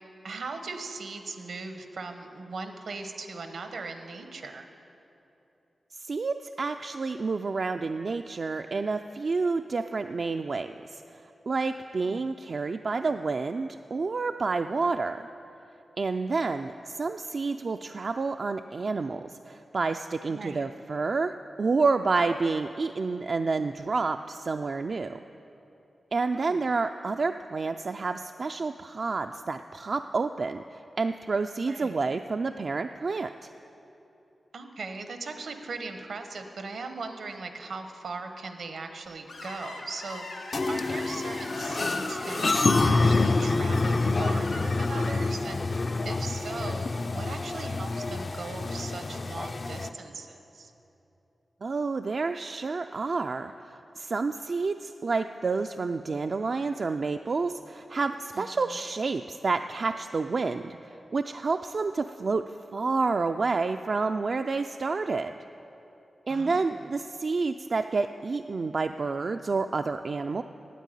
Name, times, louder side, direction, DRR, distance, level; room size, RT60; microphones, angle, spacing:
voice 1, 0.2-4.7 12.0-12.3 20.3-20.6 26.3-26.6 31.6-32.0 34.5-40.2 40.7-45.6 46.0-50.7 58.3-58.8 66.3-66.7, right 3 dB, 80° right, 7 dB, 0.9 m, -39 dB
voice 2, 6.0-11.0 11.5-15.3 16.0-25.2 26.1-33.5 51.6-65.3 66.3-70.4, right 4 dB, 60° right, 7 dB, 0.3 m, -29 dB
Screech, 39.3-45.3, left 3 dB, 90° left, 1.3 m, -39 dB
sound 1, 40.5-49.9, left 3 dB, 50° left, 0.5 m, -27 dB
9.3 x 8.3 x 8.9 m, 2.9 s
cardioid pair, 60°, 0 cm